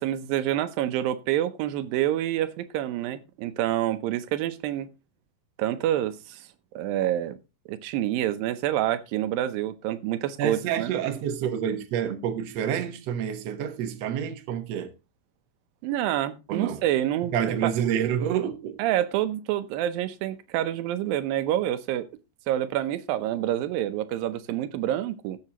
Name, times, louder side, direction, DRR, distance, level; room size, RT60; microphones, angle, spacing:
voice 1, 0.0-4.9 5.6-6.5 6.7-7.4 7.7-10.9 15.8-17.7 18.8-22.1 22.5-25.4, right 12 dB, 90° right, 2.5 m, -27 dB
voice 2, 10.4-14.9 16.5-16.8 17.3-18.8, right 9 dB, 60° right, 2.0 m, -28 dB
17.5 x 7.4 x 2.9 m
omnidirectional pair, 4.0 m